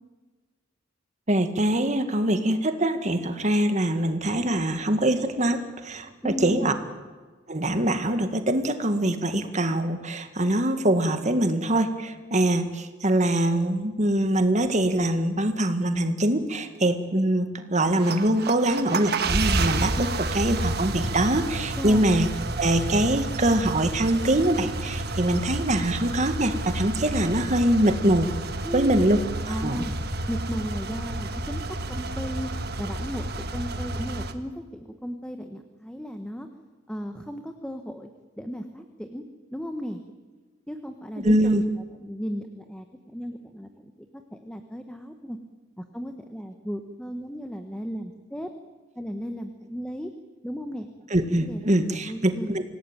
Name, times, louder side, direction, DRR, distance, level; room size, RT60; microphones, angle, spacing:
voice 1, 1.3-6.7 7.5-22.3 22.6-28.3 28.7-29.2 29.5-29.9 41.2-41.6 51.1-52.6, right 1 dB, 35° right, 8 dB, 2.0 m, -23 dB
voice 2, 6.2-6.8 21.7-22.1 28.6-29.1 29.5-29.9 30.3-31.6 31.9-36.5 36.9-38.1 38.4-39.2 39.5-40.0 40.7-41.6 42.0-45.4 45.8-48.5 48.9-50.1 50.4-51.1 51.5-52.6, equal, 5° left, 6 dB, 1.3 m, -35 dB
sound 1, 17.9-34.3, right 2 dB, 55° right, 1.6 m, -30 dB
26.0 x 17.5 x 9.1 m, 1.4 s
head